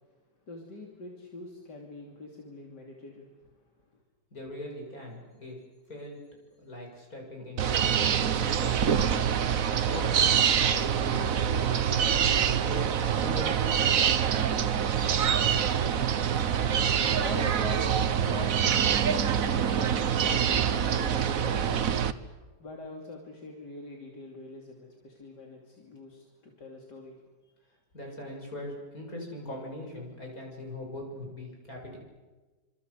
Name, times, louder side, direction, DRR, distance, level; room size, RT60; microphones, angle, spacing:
voice 1, 0.5-3.3 16.8-18.7 19.1-21.8 22.6-27.5, left 2 dB, 80° left, 1 dB, 3.5 m, -43 dB
voice 2, 4.3-5.6 5.9-6.2 6.6-9.4 9.9-12.9 13.2-13.7 27.9-32.0, left 1 dB, 55° left, 0 dB, 7.6 m, -41 dB
sound 1, 7.6-22.1, right 8 dB, 60° right, 1.4 m, -25 dB
27.5 x 26.0 x 8.1 m, 1.3 s
omnidirectional pair, 1.8 m